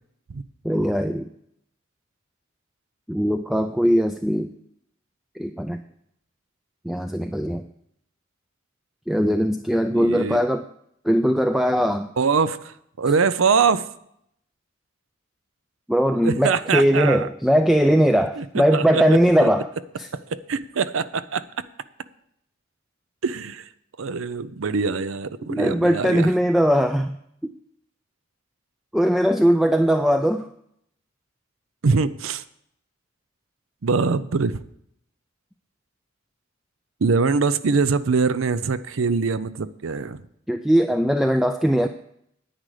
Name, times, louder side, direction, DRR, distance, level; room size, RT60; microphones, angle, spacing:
voice 1, 0.6-1.3 3.1-4.5 5.4-5.8 6.8-7.6 9.1-10.6 11.0-12.1 15.9-19.7 20.0-20.1 25.5-27.2 27.4-27.5 28.9-30.5 40.5-41.9, equal, ahead, 7 dB, 0.3 m, -20 dB
voice 2, 9.9-10.4 12.2-13.9 16.2-17.3 18.4-19.0 19.4-19.5 20.3-21.4 23.2-23.7 24.0-26.3 31.8-32.4 33.8-34.6 37.0-40.2, right 5 dB, 85° right, 15 dB, 0.6 m, -23 dB
10.0 x 9.0 x 4.9 m, 0.73 s
head